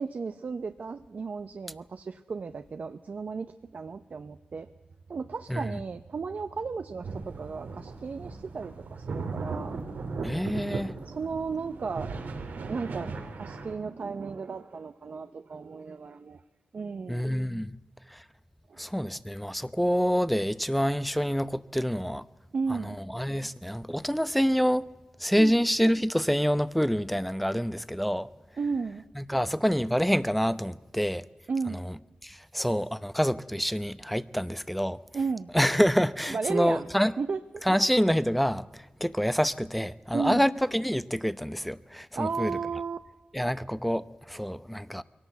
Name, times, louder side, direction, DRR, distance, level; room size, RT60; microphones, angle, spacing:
voice 1, 0.0-4.7 5.1-9.8 11.0-16.4 16.7-17.4 18.7-18.8 22.5-23.0 25.4-25.6 28.6-29.0 31.5-31.8 35.1-35.5 36.3-36.9 37.2-37.6 40.1-40.4 42.2-43.0, right 5 dB, 60° right, 0.8 m, -34 dB
sound 1, 7.0-13.7, right 4 dB, 90° right, 2.7 m, -37 dB
voice 2, 10.2-10.9 17.1-17.7 18.1-18.2 18.8-22.2 22.7-22.8 23.1-24.9 25.2-28.3 29.2-31.2 31.8-31.9 32.2-35.0 35.5-37.1 37.7-42.5 43.3-45.0, equal, ahead, 0.8 m, -27 dB
22.5 x 18.0 x 8.1 m
cardioid pair, 75°, 3 cm